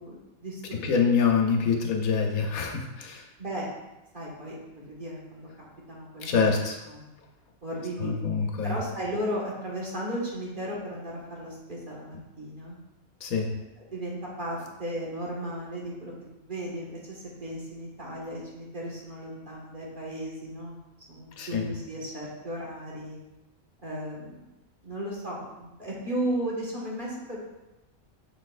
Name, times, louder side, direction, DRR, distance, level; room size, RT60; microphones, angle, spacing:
voice 1, 0.0-0.8 1.1-1.2 3.4-3.7 4.1-6.6 6.9-7.0 7.6-8.2 8.6-12.8 13.9-16.1 16.4-20.7 21.1-23.2 23.8-24.4 24.8-27.4, equal, 35° right, -5 dB, 1.7 m, -35 dB
voice 2, 0.7-3.2 6.2-6.8 8.0-8.8 13.2-13.5 21.4-21.7, left 5 dB, 80° left, 2 dB, 1.3 m, -25 dB
6.2 x 6.2 x 2.4 m, 1.0 s
omnidirectional pair, 1.5 m